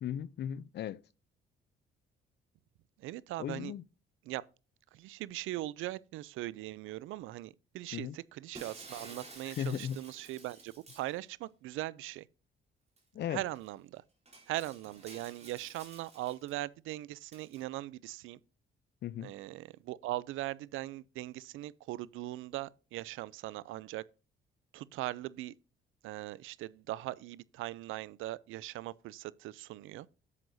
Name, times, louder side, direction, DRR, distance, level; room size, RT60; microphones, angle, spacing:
voice 1, 0.0-1.0 3.4-3.8 7.9-8.2 9.5-10.0 13.1-13.4 19.0-19.3, left 10 dB, 60° left, 0.5 m, -37 dB
voice 2, 3.0-3.7 4.2-4.4 4.9-12.3 13.3-14.0 14.5-18.4 19.2-24.0 24.7-25.5 26.0-30.1, right 16 dB, 90° right, 0.5 m, -40 dB
Shatter, 8.5-11.2 13.0-13.1 13.5-13.7 14.3-16.5 17.3-17.6, right 3 dB, 30° right, 3.9 m, -52 dB
11.0 x 7.8 x 2.7 m
cardioid pair, 90°, 20 cm